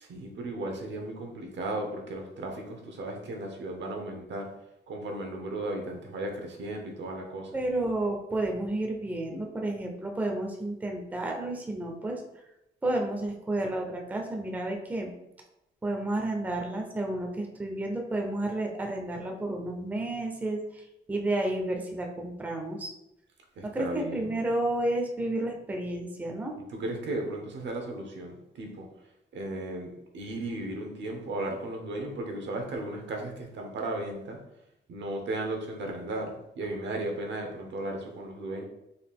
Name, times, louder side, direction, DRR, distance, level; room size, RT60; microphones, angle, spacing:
voice 1, 0.0-4.5 4.9-7.6 23.6-24.4 26.7-28.9 29.3-34.4 34.9-38.6, right 2 dB, 75° right, 3 dB, 0.8 m, -35 dB
voice 2, 7.5-12.2 12.8-15.1 15.8-22.9 23.6-26.5, right 1 dB, 10° right, 1 dB, 0.4 m, -31 dB
4.0 x 2.4 x 3.5 m, 0.85 s
wide cardioid pair, 165°, 19 cm